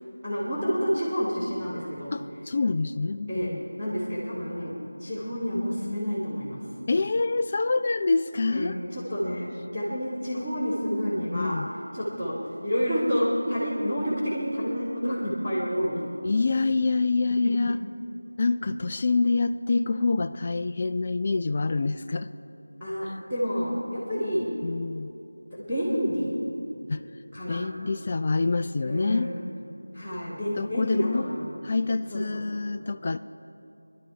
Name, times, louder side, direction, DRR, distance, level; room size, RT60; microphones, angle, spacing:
voice 1, 0.2-2.1 3.3-3.5 3.8-6.6 8.5-9.5 9.7-11.6 11.9-12.4 12.6-16.0 22.8-24.5 25.5-26.3 27.3-27.6 28.8-29.3 29.9-31.5 32.1-32.6, equal, ahead, -21 dB, 2.0 m, -29 dB
voice 2, 2.1-3.6 6.9-8.8 11.3-11.7 16.2-17.8 18.4-22.3 24.6-25.1 26.9-27.0 27.5-29.3 30.6-31.3 31.6-33.2, left 3 dB, 30° left, 9 dB, 0.3 m, -26 dB
21.0 x 11.5 x 4.7 m, 2.8 s
figure-of-eight pair, 170°, 0 cm